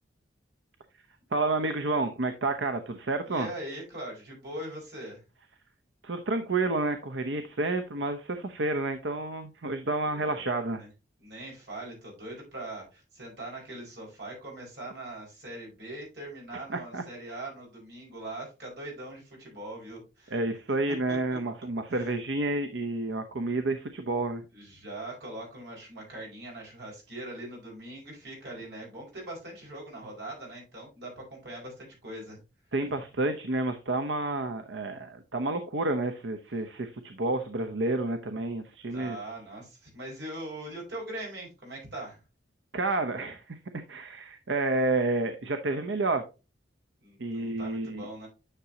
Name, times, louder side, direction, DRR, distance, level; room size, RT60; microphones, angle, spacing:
voice 1, 1.3-3.5 6.0-10.8 16.7-17.0 20.3-24.4 32.7-39.2 42.7-46.3 47.2-48.1, right 2 dB, 80° right, 0.8 m, -30 dB
voice 2, 3.2-5.2 10.0-10.4 10.7-10.9 11.2-20.3 20.9-21.4 21.9-22.1 24.5-32.4 38.9-42.2 47.0-48.3, right 1 dB, 65° right, 5.1 m, -41 dB
10.0 x 6.1 x 2.8 m
head